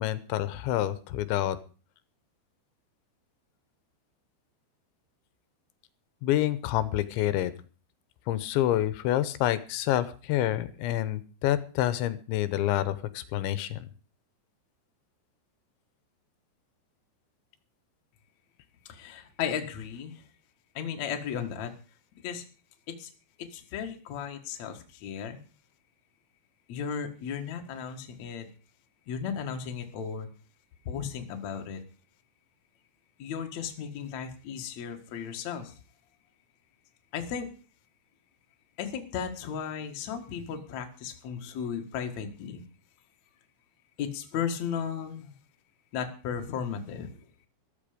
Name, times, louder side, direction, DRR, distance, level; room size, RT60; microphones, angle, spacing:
voice 1, 0.0-1.6 6.2-7.5 8.3-13.9, left 13 dB, 85° left, 14 dB, 3.1 m, -28 dB
voice 2, 18.9-20.2 20.7-21.7 22.2-22.4 22.9-23.1 23.4-25.4 26.7-28.5 29.1-30.3 30.9-31.8 33.2-35.8 37.1-37.5 38.8-42.6 44.0-45.3 45.9-47.1, left 7 dB, 55° left, 4 dB, 2.2 m, -35 dB
14.0 x 13.0 x 5.1 m, 0.37 s
omnidirectional pair, 5.3 m